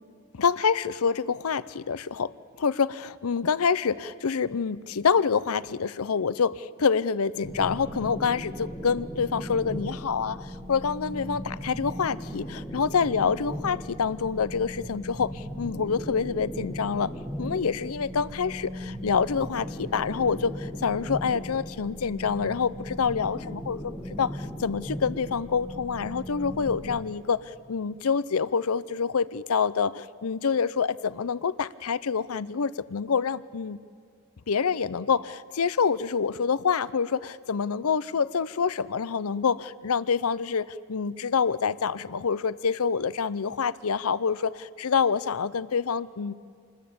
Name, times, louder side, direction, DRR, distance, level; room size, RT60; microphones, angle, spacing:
voice 1, 0.3-2.3 2.6-17.1 17.4-33.8 34.5-46.3, left 6 dB, 85° left, 17 dB, 0.6 m, -27 dB
sound 1, 7.4-27.0, equal, ahead, 1.6 m, -37 dB
27.0 x 20.5 x 8.7 m, 2.3 s
head